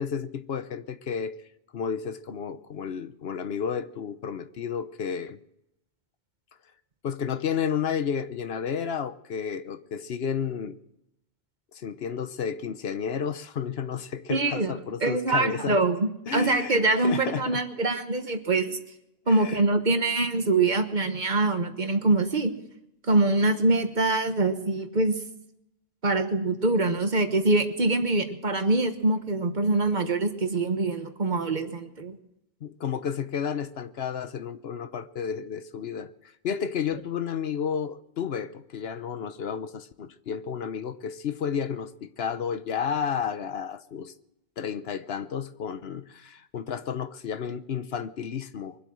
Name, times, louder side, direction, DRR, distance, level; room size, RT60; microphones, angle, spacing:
voice 1, 0.0-1.4 1.7-5.4 7.0-10.8 11.7-15.8 16.3-17.6 19.3-19.6 32.6-36.1 36.4-44.1 44.6-48.8, left 7 dB, 70° left, 12 dB, 1.0 m, -32 dB
voice 2, 14.3-14.7 15.0-18.8 19.3-22.5 23.0-25.1 26.0-32.2, right 2 dB, 45° right, 7 dB, 1.4 m, -24 dB
23.5 x 8.3 x 6.3 m, 0.83 s
omnidirectional pair, 1.1 m